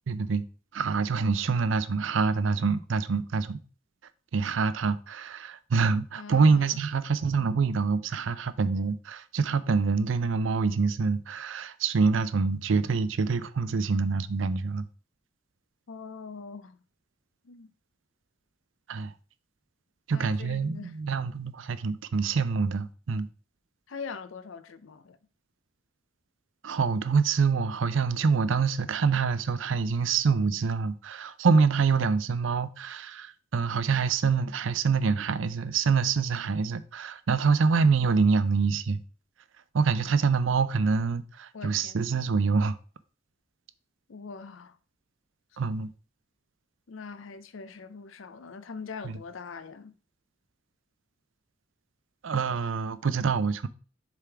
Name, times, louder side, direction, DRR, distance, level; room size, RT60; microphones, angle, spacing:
voice 1, 0.1-0.4 0.7-3.6 4.3-14.8 18.9-19.1 20.1-23.3 26.6-39.0 39.7-42.8 45.6-45.9 49.0-49.2 52.2-53.7, right 5 dB, 75° right, 0.5 m, -26 dB
voice 2, 6.2-6.8 15.9-16.8 17.4-17.7 20.1-20.9 23.9-25.2 41.5-42.1 44.1-44.8 46.9-49.9, left 5 dB, 85° left, 0.6 m, -42 dB
6.8 x 3.6 x 4.5 m
head